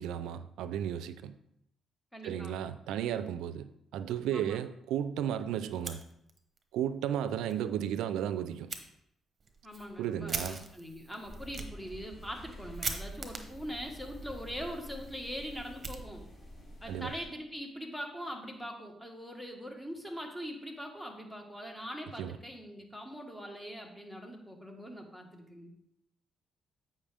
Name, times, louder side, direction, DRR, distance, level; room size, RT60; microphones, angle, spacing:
voice 1, 0.0-1.4 2.2-6.0 6.7-8.7 10.0-10.6 16.9-17.1 22.2-22.4, right 10 dB, 90° right, 12 dB, 0.4 m, -34 dB
voice 2, 2.1-2.6 4.3-4.6 9.6-16.2 16.8-25.7, equal, 5° left, 2 dB, 1.5 m, -42 dB
Fire, 5.7-6.6 7.0-7.1 7.5-7.6 8.7-8.8 9.4-16.6, right 4 dB, 40° right, 0.9 m, -43 dB
sound 1, 11.2-17.2, equal, 30° left, 3.2 m, -48 dB
8.4 x 5.6 x 3.5 m, 0.79 s
cardioid pair, 90°, 0 cm